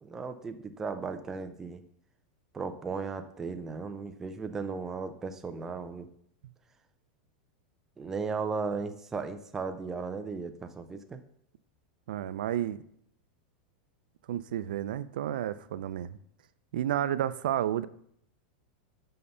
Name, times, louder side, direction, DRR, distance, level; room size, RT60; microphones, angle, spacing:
voice 1, 0.0-1.8 2.5-6.1 8.0-11.2, right 4 dB, 10° right, 7 dB, 0.4 m, -36 dB
voice 2, 12.1-12.8 14.3-16.2 16.7-17.9, right 11 dB, 85° right, 15 dB, 0.4 m, -31 dB
5.5 x 5.5 x 6.7 m, 0.69 s
supercardioid pair, 180°, 5 cm